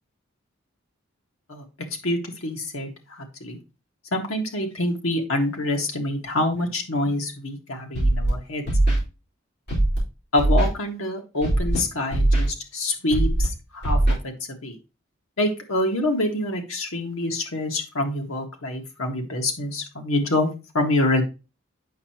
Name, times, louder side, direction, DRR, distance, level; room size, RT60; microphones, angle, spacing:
voice 1, 2.0-3.6 4.1-8.6 10.3-14.0 14.2-14.3 14.6-14.8 15.4-20.5 20.7-21.2, left 1 dB, 80° left, 2 dB, 1.6 m, -26 dB
Scratching (performance technique), 7.9-8.3 8.7-9.0 9.7-10.0 10.4-10.7 11.4-11.8 12.1-12.5 13.1-13.4 13.8-14.1, right 1 dB, 55° left, 4.2 m, -20 dB
8.5 x 5.6 x 2.9 m, 0.29 s
head